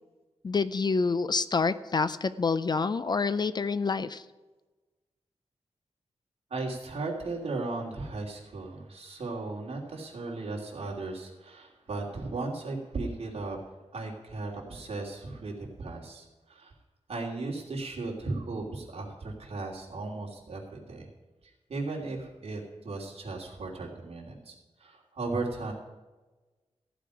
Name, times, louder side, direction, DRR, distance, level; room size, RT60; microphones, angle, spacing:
voice 1, 0.4-4.2, left 4 dB, 40° left, 14 dB, 0.4 m, -27 dB
voice 2, 6.5-13.6 13.9-16.7 17.1-21.1 21.7-25.7, right 3 dB, 60° right, -2 dB, 3.0 m, -36 dB
14.5 x 5.1 x 8.9 m, 1.2 s
wide cardioid pair, 130°, 12 cm